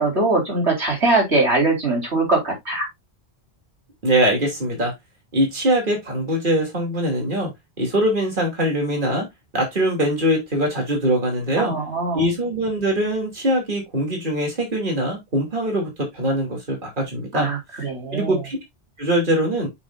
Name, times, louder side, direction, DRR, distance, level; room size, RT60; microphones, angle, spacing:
voice 1, 0.0-2.9 11.6-12.3 17.3-18.4, right 3 dB, 80° right, 4.3 m, -21 dB
voice 2, 4.0-4.9 5.3-7.5 7.8-9.3 9.5-11.7 12.1-17.5 18.1-18.6 19.0-19.7, right 1 dB, 50° right, 3.0 m, -22 dB
7.4 x 6.2 x 2.5 m
omnidirectional pair, 1.1 m